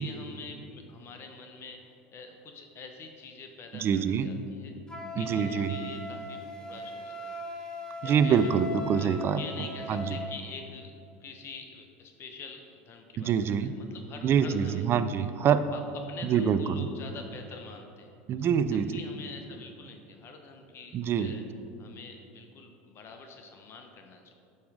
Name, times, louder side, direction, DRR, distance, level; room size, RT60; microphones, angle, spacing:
voice 1, 0.0-1.8 2.1-4.8 5.2-7.4 8.0-8.5 8.9-9.1 9.4-10.9 11.2-14.9 15.1-15.3 15.7-15.8 16.1-18.1 18.4-18.5 18.9-21.4 21.8-24.3, left 4 dB, 45° left, 4 dB, 0.9 m, -46 dB
voice 2, 3.7-4.3 5.2-5.7 8.0-9.4 9.9-10.1 13.2-13.7 14.2-15.6 16.2-16.9 18.3-18.9 20.9-21.4, right 7 dB, 40° right, 12 dB, 0.5 m, -25 dB
Wind instrument woodwind instrument, 4.9-10.3, left 1 dB, 10° left, 1.3 m, -39 dB
8.4 x 5.6 x 4.8 m, 2.5 s
supercardioid pair, 100°, 6 cm